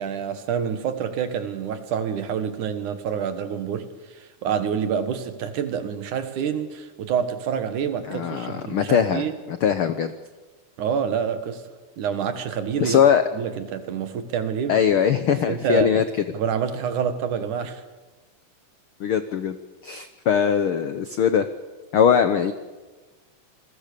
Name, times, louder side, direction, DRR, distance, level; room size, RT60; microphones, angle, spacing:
voice 1, 0.0-9.4 10.8-11.6 12.0-13.0 13.3-14.8 15.3-15.9 16.3-17.8, right 7 dB, 70° right, 9 dB, 3.0 m, -27 dB
voice 2, 8.1-10.1 12.8-13.2 14.7-16.0 19.0-19.6 19.8-21.4 21.9-22.5, left 8 dB, 80° left, 10 dB, 1.2 m, -21 dB
27.5 x 21.5 x 6.9 m, 1.2 s
omnidirectional pair, 3.7 m